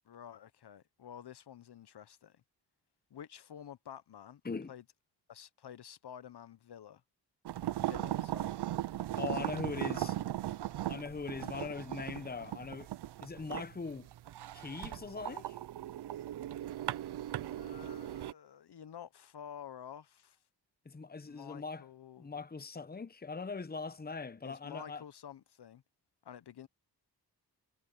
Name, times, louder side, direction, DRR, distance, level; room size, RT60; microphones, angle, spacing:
voice 1, 0.0-2.4 3.1-4.4 4.7-4.8 5.3-7.0 7.8-8.6 10.0-10.3 17.5-20.4 21.3-22.4 24.4-25.8 26.2-26.7, left 9 dB, 65° left, 0.9 m, -50 dB
sound 1, 7.5-18.3, right 13 dB, 70° right, 0.5 m, -38 dB
voice 2, 9.2-10.2 10.9-12.9 13.2-14.1 14.5-15.6 20.8-21.8 22.2-25.0, left 4 dB, 20° left, 0.9 m, -41 dB
cardioid pair, 55°, 42 cm